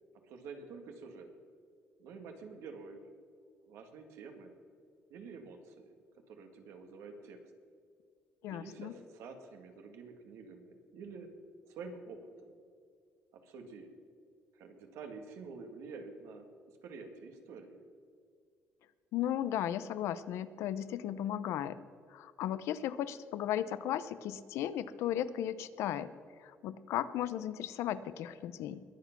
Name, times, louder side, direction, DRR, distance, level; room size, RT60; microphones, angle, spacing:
voice 1, 0.2-1.3 2.0-3.0 3.7-4.5 5.1-5.9 6.3-7.4 8.4-11.3 11.7-12.5 13.3-13.9 14.5-17.9, right 4 dB, 90° right, 5 dB, 2.1 m, -48 dB
voice 2, 8.4-8.9 19.1-21.8 22.1-26.1 26.4-28.8, left 11 dB, 85° left, 15 dB, 0.7 m, -35 dB
21.5 x 8.3 x 6.0 m, 2.3 s
cardioid pair, 120°, 5 cm